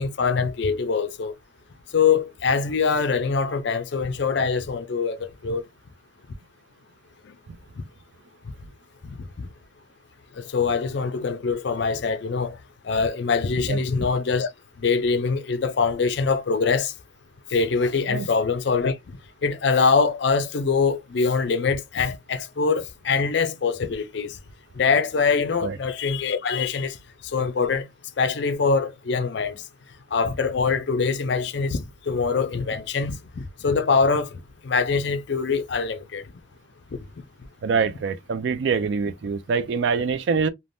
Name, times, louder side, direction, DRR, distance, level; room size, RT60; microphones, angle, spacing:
voice 1, 0.0-1.3 1.9-5.6 9.0-9.5 10.4-12.6 12.8-14.5 14.8-16.9 17.5-19.0 19.4-24.4 24.8-27.0 27.3-27.9 28.2-29.6 30.1-36.2, left 5 dB, 60° left, 0.4 m, -23 dB
voice 2, 37.6-40.5, right 5 dB, 60° right, 0.3 m, -24 dB
3.3 x 2.1 x 2.6 m
head